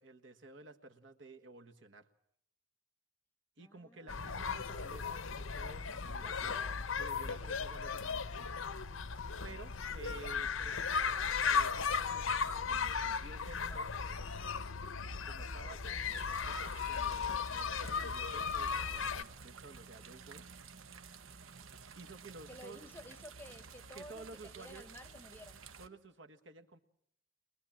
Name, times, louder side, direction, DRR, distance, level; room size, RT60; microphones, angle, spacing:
voice 1, 0.0-2.1 3.6-6.6 7.0-8.5 9.4-11.2 11.4-12.2 12.6-14.0 15.2-20.4 21.9-22.8 23.9-24.8 25.8-26.8, right 3 dB, 70° right, 6 dB, 1.4 m, -53 dB
voice 2, 3.6-4.9 6.2-6.8 22.5-25.6, left 1 dB, 10° left, 12 dB, 0.8 m, -54 dB
sound 1, 4.1-19.2, left 5 dB, 90° left, 0.9 m, -36 dB
sound 2, 16.0-25.9, right 5 dB, 90° right, 1.0 m, -53 dB
23.0 x 20.5 x 7.3 m, 0.70 s
head